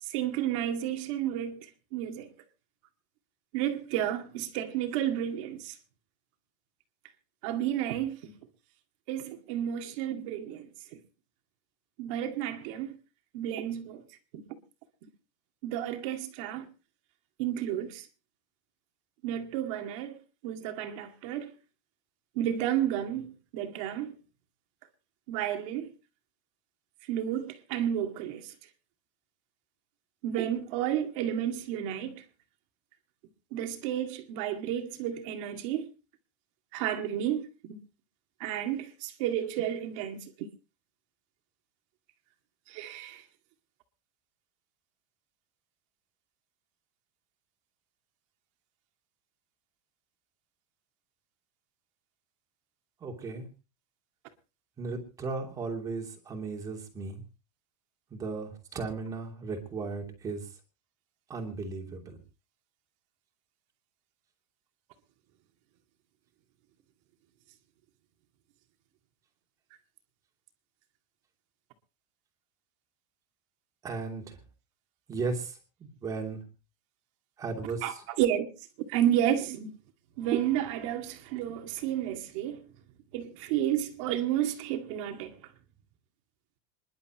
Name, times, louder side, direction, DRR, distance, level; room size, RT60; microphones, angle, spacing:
voice 1, 0.0-2.3 3.5-5.8 7.4-8.3 9.1-11.0 12.0-13.0 13.3-14.0 14.3-14.6 15.6-16.7 17.4-18.1 19.2-21.5 22.4-24.1 25.3-25.9 27.1-28.5 30.2-32.2 33.5-35.9 36.7-37.8 38.4-40.5 42.7-43.2 77.8-78.5 78.8-79.7 80.2-82.6 83.1-85.4, right 11 dB, 50° right, 2.1 m, -31 dB
voice 2, 53.0-53.5 54.8-57.2 58.1-60.4 61.3-62.2 73.8-74.2 75.1-75.5 76.0-76.4 77.4-77.8, right 4 dB, 15° right, 2.9 m, -35 dB
27.0 x 11.5 x 3.0 m
supercardioid pair, 180°, 20 cm